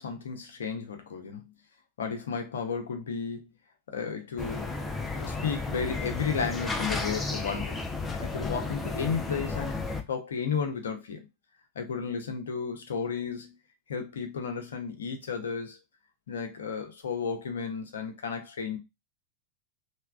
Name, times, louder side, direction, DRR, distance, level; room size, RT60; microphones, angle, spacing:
voice 1, 0.0-1.5 2.0-3.5 3.9-4.8 5.1-7.8 8.1-9.8 10.1-11.3 11.7-13.5 13.9-15.8 16.3-18.8, left 6 dB, 65° left, 0.6 m, -33 dB
sound 1, 4.4-10.0, left 3 dB, 10° left, 0.5 m, -33 dB
3.3 x 2.3 x 2.3 m
figure-of-eight pair, 90°, 0 cm